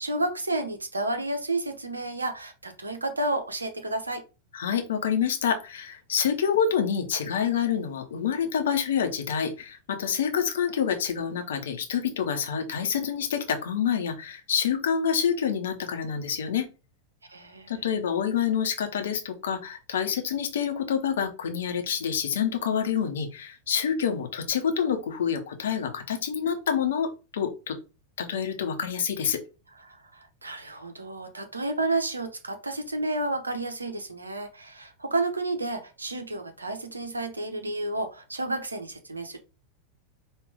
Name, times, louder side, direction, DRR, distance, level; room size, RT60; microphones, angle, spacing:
voice 1, 0.0-4.2 17.3-17.7 29.9-39.4, right 2 dB, 80° right, 6 dB, 0.9 m, -31 dB
voice 2, 4.5-16.7 17.7-27.8 28.2-29.4, left 7 dB, 60° left, 6 dB, 0.9 m, -27 dB
5.1 x 2.6 x 3.4 m, 0.30 s
figure-of-eight pair, 90°, 0 cm